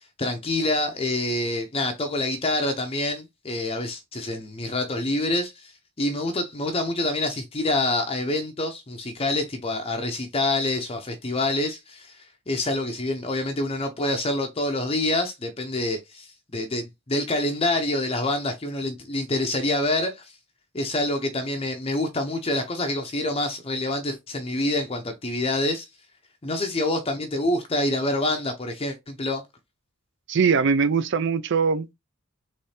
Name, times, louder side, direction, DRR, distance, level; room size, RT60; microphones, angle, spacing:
voice 1, 0.2-5.7 6.0-20.3 20.7-25.9 26.4-29.4, left 2 dB, 25° left, 0.6 m, -26 dB
voice 2, 30.3-31.9, right 5 dB, 55° right, 0.4 m, -21 dB
4.2 x 3.2 x 3.2 m
head